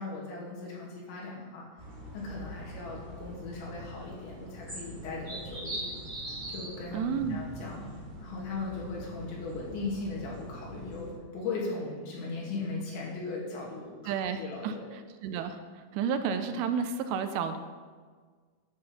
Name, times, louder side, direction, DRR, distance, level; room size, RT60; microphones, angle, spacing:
voice 1, 0.0-1.7 2.1-5.9 6.5-7.8 8.2-14.1 14.4-14.9, left 3 dB, 85° left, -5 dB, 4.9 m, -38 dB
sound 1, 1.8-11.1, right 1 dB, 15° right, 3.3 m, -42 dB
voice 2, 6.9-7.4 14.1-15.6 15.9-17.6, right 6 dB, 80° right, 8 dB, 2.7 m, -31 dB
10.5 x 8.2 x 5.5 m, 1.5 s
omnidirectional pair, 5.1 m